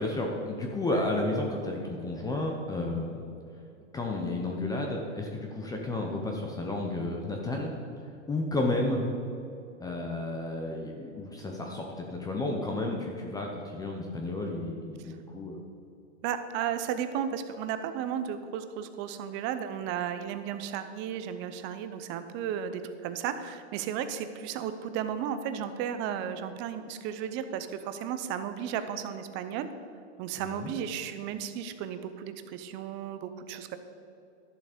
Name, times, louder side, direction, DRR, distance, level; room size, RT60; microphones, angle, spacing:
voice 1, 0.0-3.2 3.9-7.7 8.3-9.0 9.8-15.6 30.4-30.7, left 2 dB, 10° left, 1 dB, 0.7 m, -32 dB
voice 2, 16.2-29.7 30.2-33.8, right 9 dB, 30° right, 10 dB, 0.7 m, -34 dB
12.0 x 7.2 x 5.1 m, 2.6 s
supercardioid pair, 145°, 36 cm